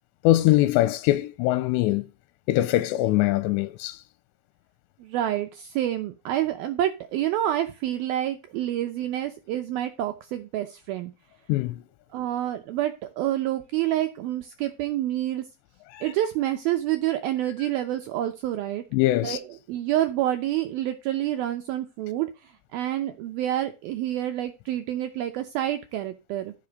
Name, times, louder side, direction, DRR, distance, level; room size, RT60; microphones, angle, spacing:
voice 1, 0.2-2.1 2.5-4.0 11.5-11.8 15.9-16.1 18.9-19.4, left 15 dB, 85° left, 2.9 m, -22 dB
voice 2, 5.0-11.1 12.1-15.5 16.0-18.8 19.2-19.4 19.7-26.5, right 13 dB, 75° right, 2.3 m, -28 dB
14.0 x 5.8 x 5.1 m
omnidirectional pair, 5.0 m